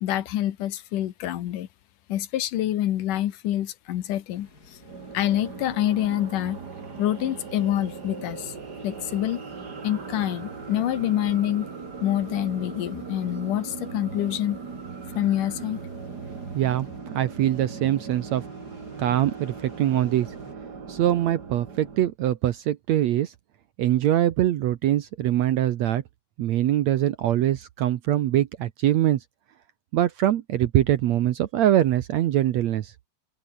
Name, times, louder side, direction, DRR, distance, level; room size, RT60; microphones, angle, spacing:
voice 1, 0.0-1.7 2.1-4.8 5.1-6.6 7.0-8.5 8.8-9.4 9.8-11.7 12.0-14.6 15.1-15.8, left 12 dB, 70° left, 2.7 m, -26 dB
sound 1, 4.3-20.5, left 3 dB, 25° left, 4.6 m, -52 dB
sound 2, 4.8-22.1, right 5 dB, 35° right, 2.5 m, -39 dB
voice 2, 16.5-16.9 17.1-18.5 19.0-20.3 20.9-23.3 23.8-26.0 26.4-29.2 29.9-32.9, right 12 dB, 65° right, 1.8 m, -23 dB
omnidirectional pair, 4.0 m